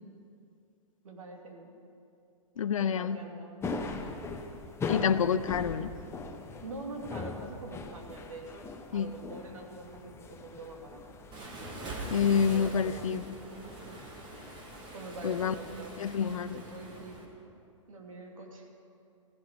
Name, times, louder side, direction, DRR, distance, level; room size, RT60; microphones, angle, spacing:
voice 1, 1.0-1.7 2.8-3.6 4.3-4.4 6.6-8.7 8.9-11.0 12.5-13.1 13.8-14.0 14.9-16.0 16.7-17.3 17.9-18.7, right 2 dB, 80° right, 1 dB, 2.8 m, -44 dB
voice 2, 2.6-3.2 4.9-5.9 8.9-9.1 12.1-13.3 15.2-15.5 16.0-16.6, left 7 dB, 75° left, 14 dB, 0.6 m, -28 dB
sound 1, 3.6-15.9, left 3 dB, 15° left, 1.2 m, -41 dB
Waves surf, 11.3-17.2, right 2 dB, 25° right, 2.7 m, -44 dB
16.0 x 15.5 x 5.2 m, 2.5 s
hypercardioid pair, 115°, 17 cm